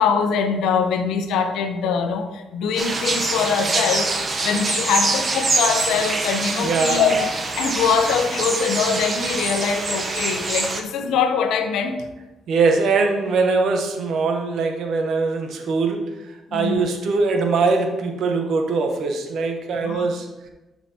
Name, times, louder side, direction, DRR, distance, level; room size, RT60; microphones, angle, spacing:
voice 1, 0.0-4.2 4.4-7.3 7.6-12.0 16.5-16.8 19.8-20.1, left 6 dB, 85° left, 7 dB, 0.8 m, -23 dB
sound 1, 2.8-10.8, right 3 dB, 35° right, 0.9 m, -24 dB
voice 2, 6.6-7.2 12.5-20.5, right 4 dB, 70° right, 4 dB, 1.2 m, -22 dB
11.0 x 5.8 x 2.9 m, 1.1 s
cardioid pair, 90°, 0 cm